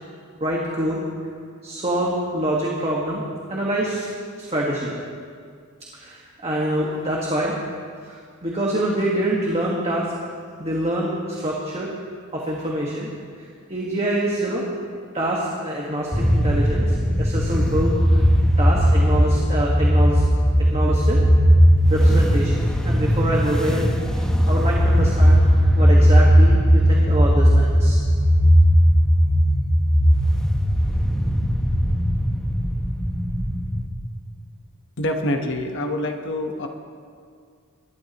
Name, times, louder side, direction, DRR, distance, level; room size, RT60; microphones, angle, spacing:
voice 1, 0.4-1.0 1.6-3.2 3.5-4.0 4.4-5.0 5.9-7.5 8.0-10.1 10.6-11.9 12.3-13.1 13.7-14.6 15.1-18.3 18.6-20.2 20.7-21.2 21.9-25.4 25.7-28.0, right 1 dB, 30° right, -4 dB, 1.6 m, -25 dB
sound 1, 16.1-33.9, equal, 5° left, 0.9 m, -17 dB
voice 2, 35.0-36.7, left 1 dB, 60° left, 4 dB, 1.1 m, -26 dB
23.0 x 12.5 x 3.0 m, 2.2 s
head